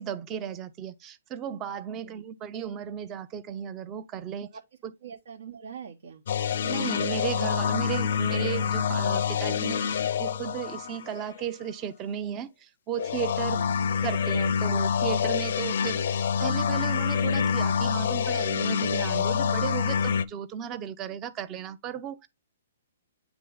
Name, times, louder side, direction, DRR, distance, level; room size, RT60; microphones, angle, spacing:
voice 1, 0.0-4.5 4.8-4.9 6.6-13.6 14.0-22.3, right 9 dB, 20° right, 0.6 m, -35 dB
voice 2, 5.0-6.2 13.4-13.7, right 6 dB, 75° right, 1.3 m, -43 dB
sound 1, 6.3-11.4 12.9-20.3, left 7 dB, 60° left, 0.5 m, -27 dB
9.1 x 3.3 x 3.9 m
hypercardioid pair, 160°, 0 cm